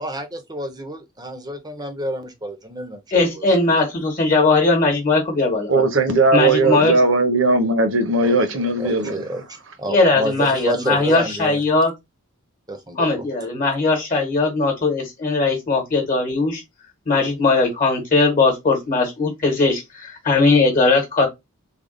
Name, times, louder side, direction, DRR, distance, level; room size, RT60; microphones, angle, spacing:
voice 1, 0.0-3.0 3.3-3.4 6.6-6.8 8.2-11.6 12.7-13.1, right 1 dB, 20° right, 0.6 m, -29 dB
voice 2, 3.1-5.8 6.3-7.0 9.9-11.9 13.0-16.6 17.1-21.3, left 3 dB, 40° left, 1.1 m, -19 dB
voice 3, 5.7-9.1, right 2 dB, 60° right, 0.8 m, -18 dB
3.5 x 2.3 x 3.7 m
head